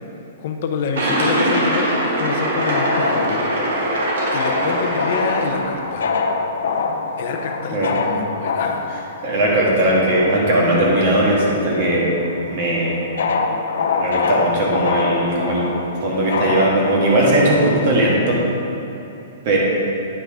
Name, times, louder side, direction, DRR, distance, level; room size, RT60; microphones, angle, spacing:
voice 1, 0.4-3.5 4.3-6.1 7.2-8.9, left 5 dB, 40° left, 4 dB, 0.7 m, -26 dB
sound 1, 0.9-5.9, right 1 dB, 65° right, 1.6 m, -22 dB
sound 2, 2.5-11.5 11.8-18.3, left 4 dB, 80° left, 0.6 m, -25 dB
voice 2, 9.2-12.1 12.5-13.0 14.0-15.7 16.0-18.4 19.4-19.6, right 1 dB, 35° right, -4 dB, 1.6 m, -18 dB
9.6 x 5.7 x 3.6 m, 3.0 s
hypercardioid pair, 180°, 0 cm